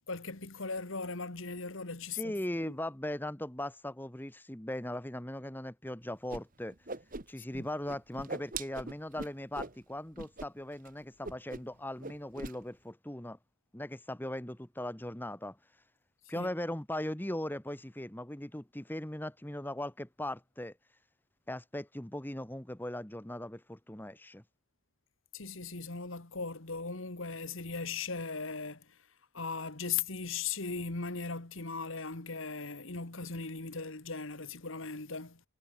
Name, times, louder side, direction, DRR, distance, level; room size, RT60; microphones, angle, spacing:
voice 1, 0.1-2.8 7.6-7.7 16.3-16.5 25.3-29.0 29.3-35.4, left 4 dB, 60° left, 1.9 m, -38 dB
voice 2, 2.1-6.8 7.3-13.4 13.7-15.6 16.3-20.7 21.5-24.4, left 1 dB, 10° left, 1.1 m, -39 dB
Whoosh swoosh swish, 6.3-6.4 6.7-7.6 7.9-9.8 10.2-10.5 10.7-10.9 11.2-11.8 12.0-12.6, right 3 dB, 40° right, 1.5 m, -41 dB
head